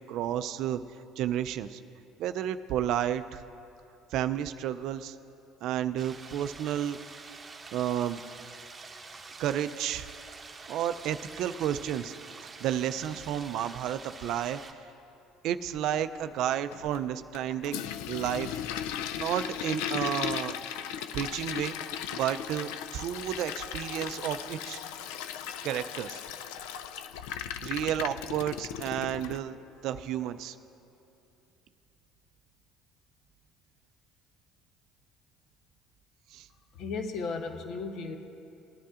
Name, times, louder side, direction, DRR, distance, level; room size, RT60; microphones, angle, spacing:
voice 1, 0.1-0.8 1.2-1.8 2.2-3.4 4.1-5.2 5.6-7.0 7.7-8.2 9.4-10.1 10.7-12.1 12.4-14.6 15.4-17.8 18.1-18.6 19.1-20.6 21.1-21.8 22.1-24.8 25.6-26.2 27.6-29.6 29.8-30.6 36.3-36.5, right 10 dB, 65° right, 11 dB, 0.4 m, -31 dB
sound 1, 6.0-14.7, right 4 dB, 25° right, 1.0 m, -47 dB
Toilet flush, 16.7-29.4, left 9 dB, 80° left, 0.3 m, -37 dB
voice 2, 36.7-38.2, left 4 dB, 60° left, 7 dB, 0.8 m, -35 dB
18.5 x 10.5 x 2.5 m, 2.8 s
supercardioid pair, 80°, 0 cm